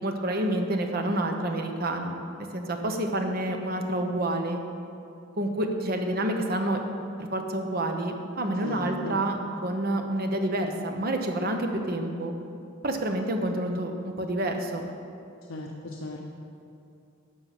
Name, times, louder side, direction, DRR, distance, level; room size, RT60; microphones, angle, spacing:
voice 1, 0.0-4.6 5.4-6.8 7.3-12.3 12.8-14.9, right 1 dB, 45° right, 4 dB, 1.0 m, -28 dB
voice 2, 8.6-9.1 15.5-16.2, left 2 dB, 75° left, 0 dB, 0.8 m, -37 dB
11.0 x 6.8 x 5.9 m, 2.5 s
head